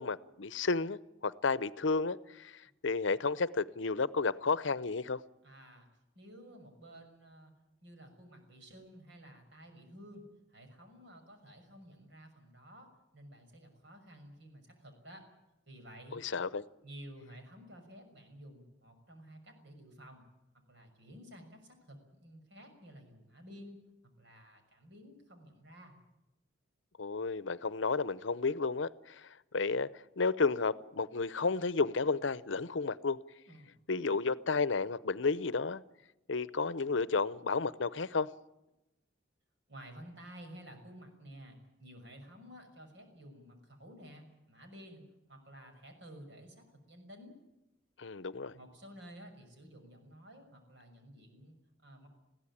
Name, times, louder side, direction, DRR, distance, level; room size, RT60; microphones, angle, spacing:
voice 1, 0.0-5.2 16.1-16.6 27.0-33.2 33.9-35.8 36.3-38.3 48.0-48.5, left 4 dB, 70° left, 0.7 m, -32 dB
voice 2, 5.4-5.9 6.1-7.5 7.8-10.2 10.5-15.2 15.7-16.2 16.8-20.3 20.7-23.8 24.2-26.0 33.5-33.7 39.7-45.0 45.3-47.4 48.5-52.1, equal, 65° right, 6.3 m, -53 dB
21.5 x 15.5 x 9.9 m
head